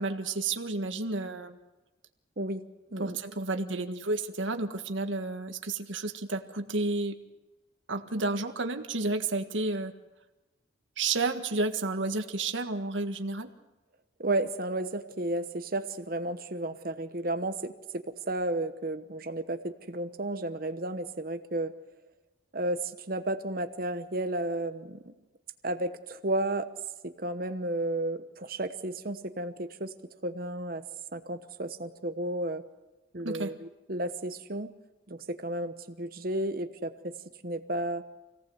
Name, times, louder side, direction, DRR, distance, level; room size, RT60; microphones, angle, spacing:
voice 1, 0.0-1.6 3.0-7.1 7.9-9.9 11.0-13.5 33.2-33.5, right 3 dB, 90° right, 6 dB, 1.7 m, -31 dB
voice 2, 14.2-21.7 22.5-25.1 25.6-26.7 27.0-29.9 30.2-30.8 31.1-32.6 33.1-34.7 35.1-37.2 37.4-38.0, right 1 dB, 50° right, 9 dB, 1.0 m, -33 dB
26.0 x 18.0 x 7.9 m, 1.1 s
head